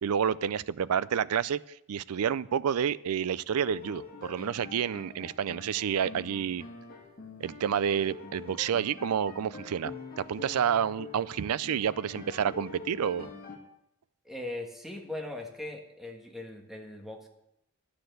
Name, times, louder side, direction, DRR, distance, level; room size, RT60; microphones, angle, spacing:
voice 1, 0.0-1.6 1.9-6.6 7.4-13.3, right 8 dB, 80° right, 19 dB, 0.4 m, -29 dB
sound 1, 3.6-13.6, left 3 dB, 45° left, 1.8 m, -45 dB
voice 2, 14.2-17.3, left 2 dB, ahead, 2 dB, 1.4 m, -39 dB
11.5 x 6.9 x 7.9 m, 0.81 s
head